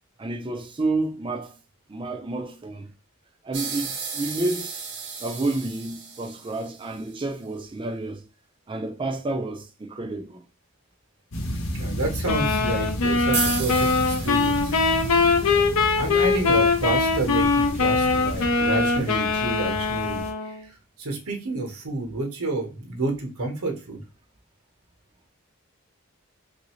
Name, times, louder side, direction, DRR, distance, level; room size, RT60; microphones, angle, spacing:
voice 1, 0.2-1.5 1.9-2.9 3.4-4.8 5.2-8.2 8.7-10.4, right 2 dB, 25° right, 0.4 m, -30 dB
sound 1, 3.5-7.0 13.3-15.7, right 5 dB, 50° right, 0.7 m, -34 dB
sound 2, 11.3-20.3, equal, 65° left, 0.8 m, -32 dB
voice 2, 11.7-14.6 15.5-15.7 15.9-20.6 21.0-24.0, right 2 dB, 90° right, 1.0 m, -29 dB
sound 3, 12.3-20.6, left 4 dB, 85° left, 0.6 m, -22 dB
3.2 x 2.6 x 3.0 m
head